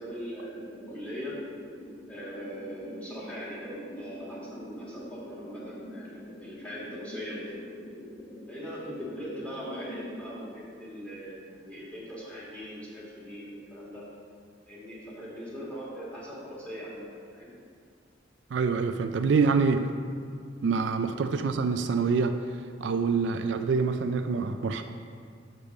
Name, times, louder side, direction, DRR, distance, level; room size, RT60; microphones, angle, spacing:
voice 1, 0.0-1.4 2.1-7.6 8.5-14.1 14.7-17.5 21.0-21.1, equal, 5° left, -8 dB, 1.9 m, -41 dB
sound 1, 0.6-10.6, left 1 dB, 65° left, 1.1 m, -44 dB
voice 2, 18.5-19.9 20.6-22.4 22.8-24.8, right 5 dB, 65° right, 7 dB, 0.3 m, -26 dB
6.7 x 5.1 x 6.0 m, 2.2 s
head